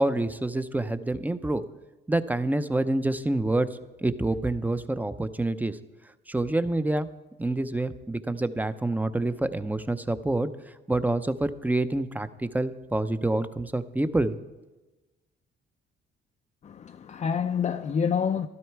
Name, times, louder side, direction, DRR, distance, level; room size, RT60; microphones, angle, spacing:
voice 1, 0.0-1.6 2.1-3.7 4.0-5.8 6.3-7.1 7.4-10.5 10.9-14.4, right 2 dB, 10° right, 0.6 m, -27 dB
voice 2, 16.6-18.5, left 7 dB, 35° left, 0.5 m, -27 dB
12.5 x 12.5 x 4.7 m
cardioid pair, 90°, 20 cm